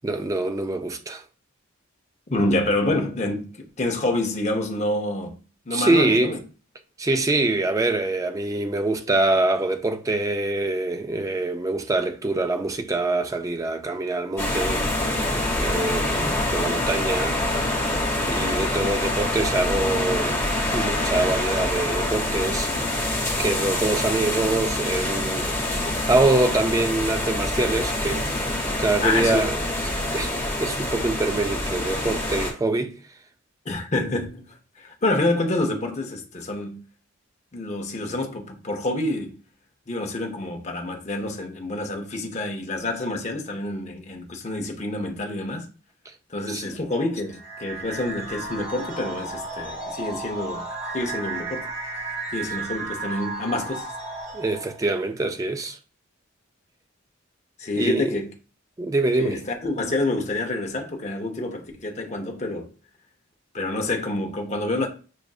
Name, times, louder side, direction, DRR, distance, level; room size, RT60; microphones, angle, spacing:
voice 1, 0.0-1.2 5.7-6.3 7.0-15.3 15.6-17.5 18.2-22.7 23.4-28.4 28.8-29.6 30.1-33.0 46.5-46.8 54.3-55.8 57.8-58.1 58.8-59.4, right 2 dB, 15° right, 0.3 m, -25 dB
voice 2, 2.3-5.4 5.7-6.4 16.2-16.3 29.0-29.5 33.7-34.5 34.8-36.8 37.5-39.4 39.9-45.7 46.3-50.7 50.9-51.7 52.3-53.9 57.6-58.3 59.2-62.7 63.5-64.9, left 2 dB, 35° left, 0.7 m, -27 dB
sound 1, 14.4-32.5, left 1 dB, 10° left, 1.3 m, -26 dB
sound 2, 47.3-54.9, right 3 dB, 30° right, 1.0 m, -34 dB
6.2 x 2.5 x 2.3 m
head